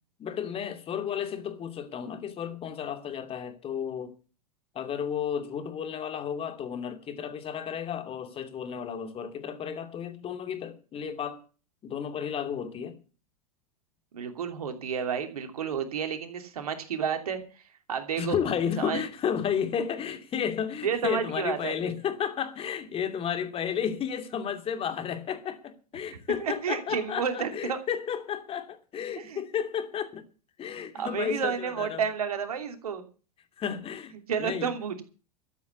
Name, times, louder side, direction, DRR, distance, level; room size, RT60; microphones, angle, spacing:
voice 1, 0.2-4.1 4.7-11.4 11.8-13.0 18.2-30.2 30.6-32.0 33.6-34.7, left 8 dB, 30° left, 2.7 m, -32 dB
voice 2, 14.1-17.4 17.9-18.4 18.8-19.0 20.8-21.7 26.4-27.8 29.2-29.4 30.9-33.0 34.3-35.0, right 7 dB, 75° right, 2.9 m, -31 dB
13.5 x 8.4 x 8.3 m
hypercardioid pair, 95°, 19 cm